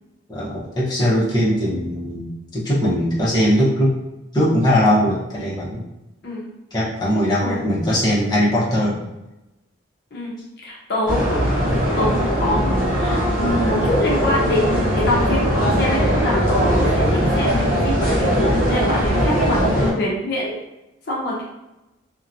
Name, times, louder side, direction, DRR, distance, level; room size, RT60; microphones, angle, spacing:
voice 1, 0.3-4.0 4.3-5.8 6.7-9.1, equal, 20° left, -8 dB, 0.7 m, -20 dB
voice 2, 10.6-19.6 19.9-20.6 21.1-21.4, left 1 dB, 60° left, -5 dB, 0.6 m, -25 dB
sound 1, 11.1-19.9, equal, 50° right, 0.7 m, -19 dB
2.6 x 2.1 x 2.5 m, 0.97 s
head